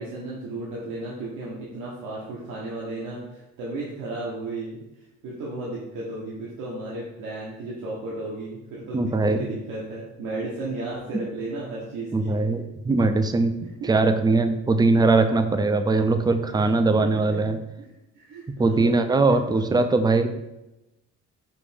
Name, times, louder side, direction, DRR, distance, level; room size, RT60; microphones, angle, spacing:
voice 1, 0.0-4.8 5.2-12.4 13.8-13.9 16.5-16.7 17.0-17.4 17.8-17.9 18.1-19.8, right 2 dB, 85° right, -6 dB, 1.0 m, -34 dB
voice 2, 8.9-9.4 12.1-17.6 18.6-20.3, right 3 dB, 15° right, 8 dB, 0.3 m, -21 dB
5.1 x 2.6 x 3.4 m, 0.95 s
cardioid pair, 90°, 30 cm